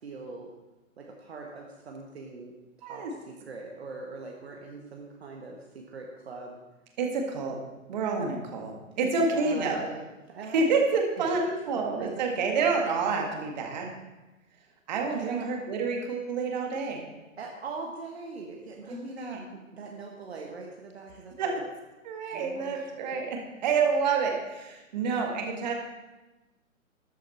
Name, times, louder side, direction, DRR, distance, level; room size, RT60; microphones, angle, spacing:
voice 1, 0.0-0.5 1.0-2.5 2.8-6.6 9.0-10.7 11.2-11.4 11.7-12.3 15.1-15.5 17.4-21.7 22.3-22.9, right 3 dB, 50° right, 0 dB, 1.5 m, -41 dB
voice 2, 7.0-7.6 7.9-9.9 10.5-13.9 14.9-17.1 18.8-19.4 21.4-21.6 22.0-23.4 23.6-25.7, right 4 dB, 30° right, 2 dB, 1.9 m, -28 dB
13.0 x 8.3 x 4.3 m, 1.1 s
figure-of-eight pair, 135°, 41 cm